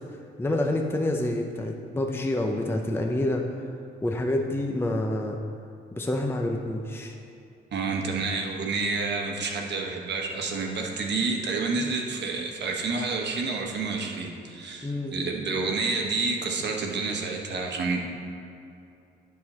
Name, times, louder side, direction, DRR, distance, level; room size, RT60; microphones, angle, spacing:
voice 1, 0.4-3.4 4.0-5.4 5.9-7.1 11.8-11.9 14.8-15.1, left 1 dB, 10° left, 2 dB, 0.6 m, -27 dB
voice 2, 7.7-18.0, right 4 dB, 60° right, 1 dB, 1.1 m, -29 dB
8.2 x 6.3 x 4.2 m, 2.6 s
cardioid pair, 90°, 20 cm